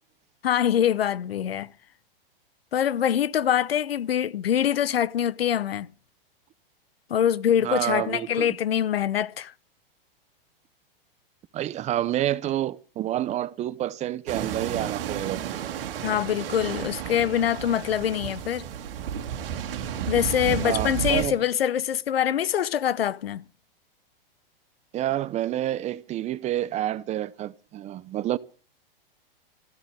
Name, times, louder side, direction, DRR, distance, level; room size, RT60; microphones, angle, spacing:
voice 1, 0.4-1.7 2.7-5.9 7.1-9.5 16.0-18.7 20.1-23.4, left 10 dB, 90° left, 0.8 m, -24 dB
voice 2, 7.6-8.6 11.5-15.6 20.6-21.3 24.9-28.4, right 13 dB, 25° right, 0.7 m, -28 dB
sound 1, 14.3-21.3, right 9 dB, 70° right, 2.1 m, -32 dB
15.0 x 7.2 x 9.5 m
hypercardioid pair, 125°, 29 cm